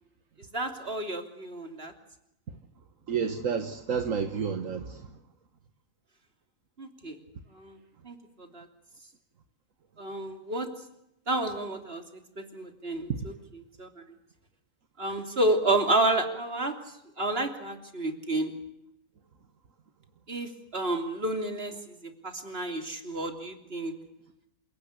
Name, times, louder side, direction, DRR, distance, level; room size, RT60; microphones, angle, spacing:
voice 1, 0.5-1.9 6.8-7.2 7.5-7.8 8.0-8.7 10.0-10.7 11.3-12.0 12.4-13.1 13.8-14.0 15.0-16.8 17.2-18.5 20.3-23.9, right 2 dB, 45° right, 5 dB, 3.4 m, -30 dB
voice 2, 3.1-5.2, right 6 dB, 70° right, 7 dB, 1.7 m, -30 dB
28.0 x 18.0 x 8.3 m, 0.82 s
omnidirectional pair, 1.4 m